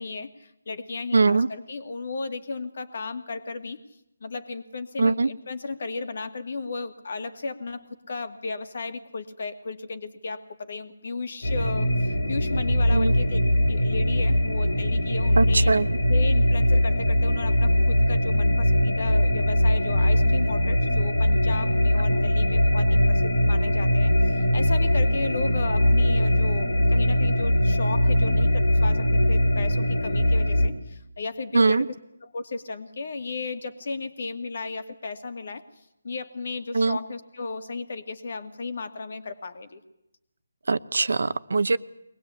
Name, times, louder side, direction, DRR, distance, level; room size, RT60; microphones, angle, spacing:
voice 1, 0.0-3.8 4.2-13.4 13.7-15.7 16.1-31.9 32.2-35.6 36.0-39.8, left 3 dB, 55° left, 8 dB, 2.2 m, -34 dB
voice 2, 1.1-1.5 5.0-5.3 12.9-13.1 15.4-15.9 31.5-31.8 36.7-37.0 40.7-41.8, right 3 dB, 70° right, 15 dB, 0.9 m, -21 dB
sound 1, 11.4-30.7, equal, 80° left, 3.7 m, -21 dB
22.5 x 19.5 x 8.5 m, 0.83 s
figure-of-eight pair, 155°, 0 cm